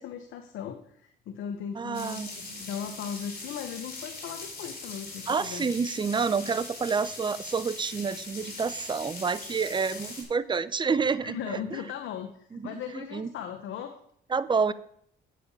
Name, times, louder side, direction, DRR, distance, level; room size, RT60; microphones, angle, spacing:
voice 1, 0.0-2.2 2.5-5.7 9.8-10.0 11.2-14.0, left 8 dB, 80° left, 6 dB, 0.9 m, -38 dB
voice 2, 1.8-2.6 5.3-11.8 12.5-13.3 14.3-14.7, right 5 dB, 25° right, 16 dB, 0.5 m, -29 dB
sound 1, 1.9-10.2, left 3 dB, 50° left, 4.1 m, -41 dB
8.6 x 7.6 x 5.3 m, 0.68 s
cardioid pair, 90°, 20 cm